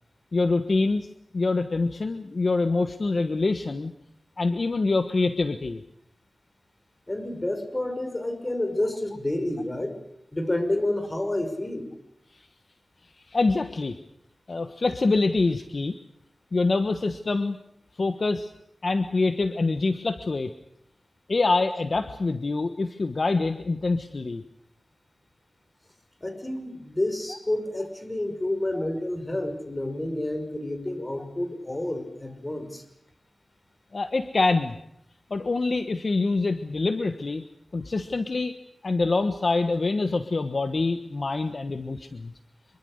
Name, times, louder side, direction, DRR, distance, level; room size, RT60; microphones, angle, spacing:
voice 1, 0.3-1.1 1.3-3.9 4.4-5.8 12.3-12.4 13.3-14.0 14.5-15.9 16.5-17.6 18.0-18.5 18.8-20.5 21.3-24.4 33.9-34.8 35.3-37.4 37.7-38.5 38.8-42.3, left 3 dB, 55° left, 9 dB, 1.3 m, -25 dB
voice 2, 7.1-10.0 10.3-11.9 26.2-32.8, left 1 dB, 25° left, 8 dB, 5.6 m, -29 dB
26.0 x 23.5 x 6.6 m, 0.78 s
wide cardioid pair, 80°, 0 cm